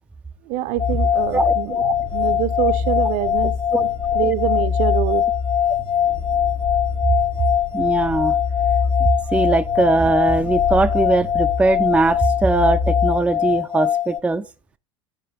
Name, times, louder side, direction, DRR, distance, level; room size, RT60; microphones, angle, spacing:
voice 1, 0.4-3.6 4.1-5.3, right 13 dB, 55° right, 0.7 m, -25 dB
sound 1, 0.8-13.3, left 5 dB, 85° left, 2.4 m, -27 dB
sound 2, 0.8-14.2, left 9 dB, 35° left, 0.6 m, -22 dB
voice 2, 1.3-1.9 3.7-3.8 7.7-8.4 9.0-14.5, right 3 dB, 5° right, 0.4 m, -20 dB
10.5 x 4.7 x 4.0 m
figure-of-eight pair, 70°, 16 cm